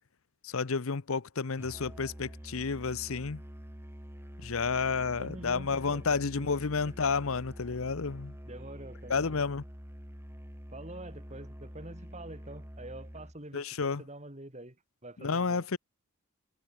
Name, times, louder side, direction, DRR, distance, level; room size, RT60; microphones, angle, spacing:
voice 1, 0.4-3.4 4.4-8.4 9.1-9.6 13.5-14.0 15.2-15.8, left 5 dB, 65° left, 0.8 m, -31 dB
Musical instrument, 1.6-13.4, equal, 10° right, 5.7 m, -46 dB
voice 2, 5.2-6.5 6.8-6.9 8.4-9.4 10.7-15.8, right 1 dB, 30° right, 3.3 m, -46 dB
head